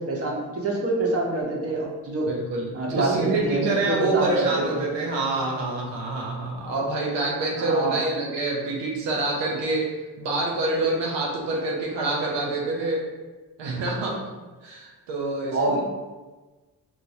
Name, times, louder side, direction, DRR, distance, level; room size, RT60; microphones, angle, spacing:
voice 1, 0.0-2.3 2.7-4.9 7.6-8.0 15.5-15.8, right 2 dB, 35° right, -2 dB, 0.9 m, -26 dB
voice 2, 2.3-13.1 13.6-14.2 14.6-15.8, right 2 dB, 85° right, -2 dB, 0.7 m, -27 dB
4.4 x 2.1 x 2.6 m, 1.3 s
supercardioid pair, 55°, 42 cm